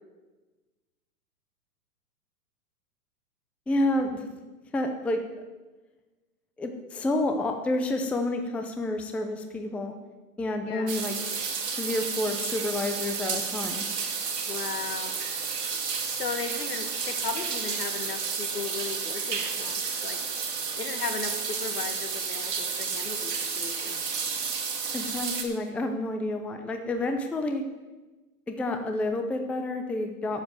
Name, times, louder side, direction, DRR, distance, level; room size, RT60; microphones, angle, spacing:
voice 1, 3.7-4.3 4.7-5.2 6.6-9.9 10.4-11.2 11.7-13.9 24.9-27.6 28.5-30.4, left 2 dB, 5° left, 5 dB, 0.5 m, -29 dB
sound 1, 10.9-25.4, right 5 dB, 85° right, 2.6 m, -31 dB
voice 2, 14.5-15.2 16.2-20.2 20.8-24.0, left 5 dB, 75° left, 7 dB, 1.9 m, -36 dB
12.0 x 7.9 x 7.0 m, 1.2 s
hypercardioid pair, 120°, 47 cm